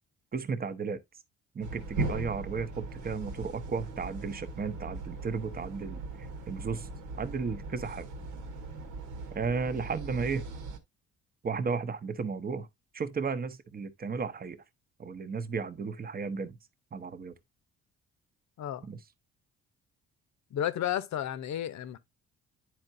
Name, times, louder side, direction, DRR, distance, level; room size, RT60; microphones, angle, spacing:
voice 1, 0.3-1.0 1.5-6.0 6.5-6.9 7.2-8.1 9.3-10.5 11.4-12.7 12.9-14.6 15.0-16.6 16.9-17.3 18.9-19.0, right 5 dB, 30° right, 0.8 m, -34 dB
sound 1, 1.6-10.8, right 3 dB, 90° right, 1.3 m, -39 dB
voice 2, 20.5-22.0, left 11 dB, 65° left, 0.8 m, -32 dB
10.5 x 4.5 x 2.6 m
cardioid pair, 90°, 30 cm